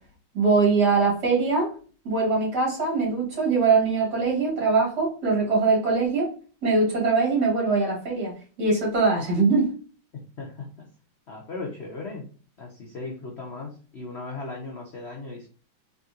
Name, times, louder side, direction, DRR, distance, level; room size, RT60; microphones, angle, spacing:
voice 1, 0.3-1.7 2.0-6.3 6.6-9.7, right 4 dB, 50° right, -3 dB, 2.4 m, -22 dB
voice 2, 10.4-10.9 11.3-12.3 12.6-15.5, left 3 dB, 65° left, -1 dB, 0.6 m, -37 dB
4.1 x 3.7 x 2.4 m, 0.38 s
omnidirectional pair, 2.3 m